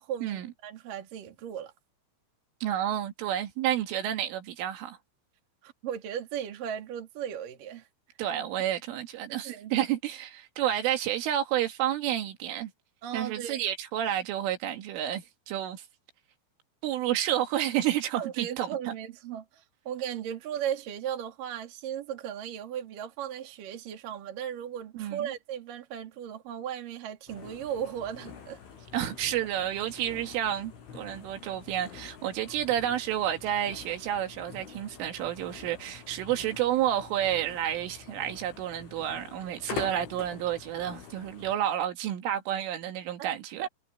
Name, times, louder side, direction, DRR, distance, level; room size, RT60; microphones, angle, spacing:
voice 1, 0.0-1.7 5.6-7.9 9.4-9.7 13.0-13.6 18.1-28.6 43.2-43.3 43.6-43.7, right 9 dB, 50° right, 3.6 m, -36 dB
voice 2, 2.6-5.0 8.2-12.7 13.1-15.8 16.8-18.9 24.9-25.3 28.9-43.7, right 11 dB, 85° right, 4.5 m, -30 dB
sound 1, 27.3-41.6, left 6 dB, 80° left, 7.3 m, -45 dB
omnidirectional pair, 5.6 m